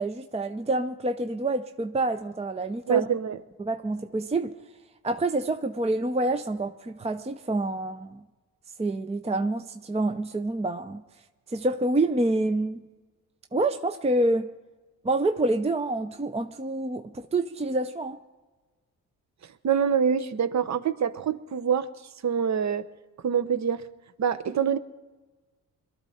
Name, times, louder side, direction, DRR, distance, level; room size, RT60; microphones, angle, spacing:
voice 1, 0.0-3.1 3.6-4.5 5.0-8.2 8.8-11.0 11.5-12.8 13.5-14.5 15.0-18.2, right 2 dB, 15° right, 0.6 m, -27 dB
voice 2, 2.9-3.4 19.6-21.9 22.2-22.9 23.2-23.8 24.2-24.8, right 7 dB, 45° right, 0.9 m, -25 dB
22.0 x 12.5 x 4.2 m
cardioid pair, 65°, 37 cm